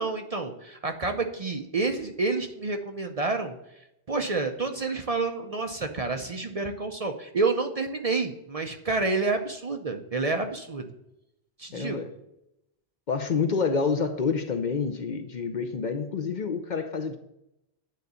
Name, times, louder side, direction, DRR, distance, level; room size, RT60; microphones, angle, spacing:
voice 1, 0.0-10.9 11.6-12.1, right 3 dB, 40° right, 5 dB, 0.6 m, -29 dB
voice 2, 11.7-12.1 13.1-17.2, left 5 dB, 50° left, 8 dB, 0.7 m, -28 dB
9.3 x 3.9 x 6.8 m, 0.85 s
omnidirectional pair, 1.1 m